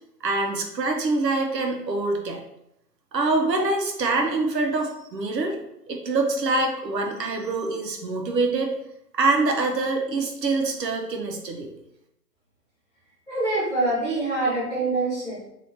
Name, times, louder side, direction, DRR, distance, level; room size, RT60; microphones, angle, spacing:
voice 1, 0.2-2.4 3.1-5.5 5.9-8.7 9.1-11.7, right 3 dB, 80° right, 2 dB, 1.0 m, -25 dB
voice 2, 13.3-15.5, right 2 dB, ahead, -19 dB, 0.9 m, -25 dB
4.2 x 2.8 x 3.3 m, 0.83 s
hypercardioid pair, 160°, 49 cm